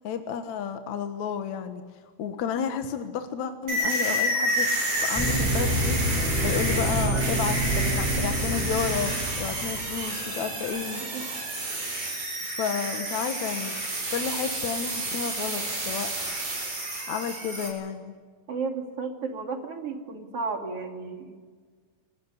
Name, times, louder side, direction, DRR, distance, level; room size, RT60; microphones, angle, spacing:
voice 1, 0.0-1.8 2.2-6.0 6.4-11.0 12.6-13.8 14.1-16.1 17.1-18.1, left 7 dB, 70° left, 7 dB, 2.6 m, -31 dB
sound 1, 3.7-17.7, right 1 dB, 80° right, 8.9 m, -30 dB
sound 2, 5.1-10.0, equal, 5° left, 5.7 m, -27 dB
voice 2, 18.5-21.4, right 4 dB, 50° right, 4 dB, 3.7 m, -33 dB
26.5 x 20.0 x 9.9 m, 1.5 s
omnidirectional pair, 3.5 m